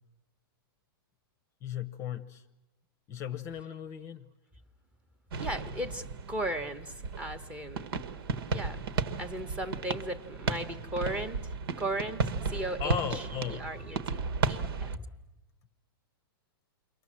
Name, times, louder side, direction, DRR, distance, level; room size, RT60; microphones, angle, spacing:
voice 1, 1.6-2.4 3.1-4.3 12.8-13.7, left 9 dB, 20° left, 11 dB, 0.9 m, -36 dB
sound 1, 5.3-15.0, right 4 dB, 70° right, 1.6 m, -34 dB
voice 2, 5.4-7.9 8.5-8.8 9.2-11.5 11.8-13.2 13.5-15.1, right 1 dB, 10° right, 8 dB, 1.1 m, -37 dB
29.0 x 24.0 x 7.5 m, 1.0 s
supercardioid pair, 165°, 13 cm